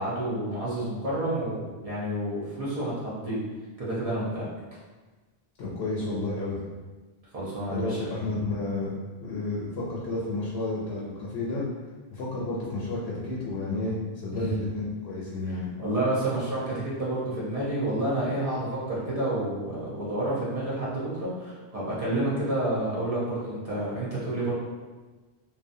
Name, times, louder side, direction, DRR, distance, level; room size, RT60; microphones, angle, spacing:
voice 1, 0.0-3.4 3.8-4.4 7.3-8.0 14.3-14.5 15.5-24.5, right 1 dB, 40° right, -8 dB, 0.8 m, -29 dB
voice 2, 5.6-6.6 7.7-11.6 12.1-15.7, left 2 dB, 75° left, -6 dB, 0.8 m, -31 dB
2.7 x 2.3 x 2.5 m, 1.3 s
omnidirectional pair, 1.1 m